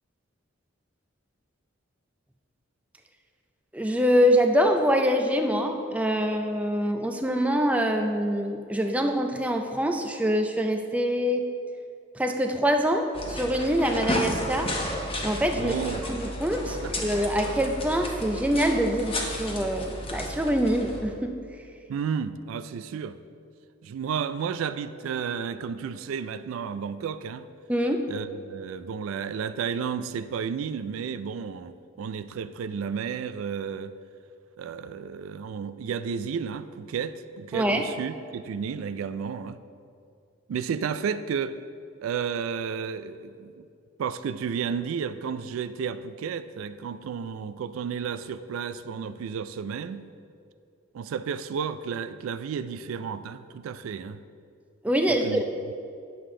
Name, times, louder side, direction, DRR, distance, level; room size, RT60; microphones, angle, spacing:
voice 1, 3.7-11.4 12.1-14.8 15.2-15.7 16.0-21.3 27.7-28.1 37.5-37.8 54.8-55.5, equal, 5° right, 4 dB, 0.4 m, -25 dB
sound 1, 13.1-21.0, left 1 dB, 25° left, 0.9 m, -33 dB
voice 2, 15.5-16.0 16.8-16.9 21.9-23.2 23.8-27.4 28.1-33.9 34.6-39.6 40.5-41.6 42.0-43.7 44.0-50.1 50.9-54.2 55.1-55.4, right 6 dB, 85° right, 13 dB, 0.3 m, -32 dB
9.2 x 6.7 x 3.7 m, 2.5 s
head